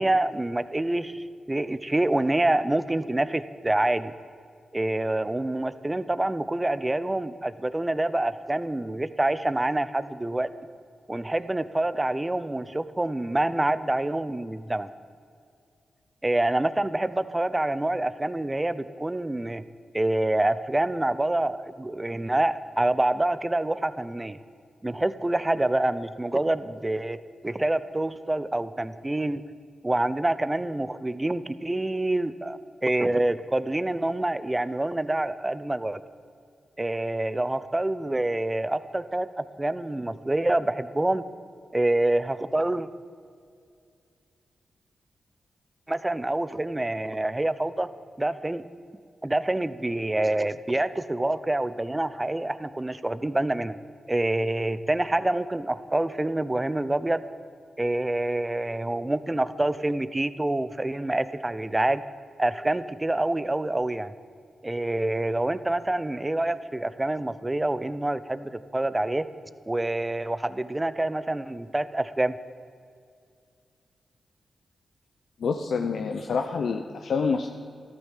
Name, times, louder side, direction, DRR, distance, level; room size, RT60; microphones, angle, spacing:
voice 1, 0.0-4.1 4.7-10.5 11.1-14.9 16.2-19.6 19.9-24.4 24.8-29.4 29.8-36.0 36.8-41.2 41.7-42.9 45.9-47.9 48.2-48.6 49.2-53.8 54.1-57.2 57.8-62.0 62.4-64.1 64.6-69.3 69.7-72.4, right 1 dB, 20° right, 14 dB, 0.8 m, -26 dB
voice 2, 75.4-77.5, left 5 dB, 75° left, 5 dB, 0.8 m, -27 dB
14.0 x 13.0 x 7.5 m, 2.3 s
cardioid pair, 65°, 0 cm